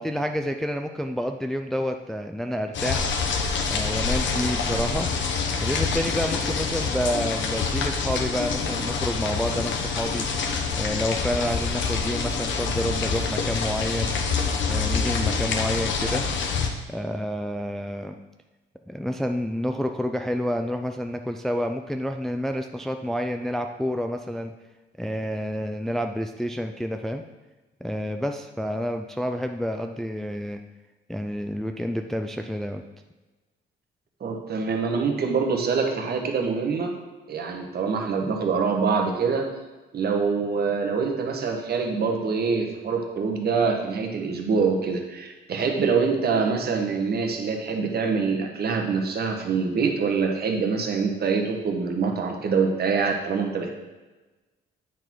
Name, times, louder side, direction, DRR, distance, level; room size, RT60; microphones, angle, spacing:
voice 1, 0.0-3.1 3.7-5.1 5.6-10.3 10.7-14.1 14.7-16.2 16.9-18.2 18.9-24.5 25.0-27.2 27.8-30.6 31.1-32.8, equal, ahead, 5 dB, 0.4 m, -29 dB
sound 1, 2.7-16.7, left 5 dB, 70° left, 0.9 m, -26 dB
voice 2, 34.2-36.9 37.3-39.4 39.9-53.7, right 5 dB, 55° right, 2 dB, 1.3 m, -25 dB
8.9 x 4.0 x 4.5 m, 1.2 s
cardioid pair, 90°, 20 cm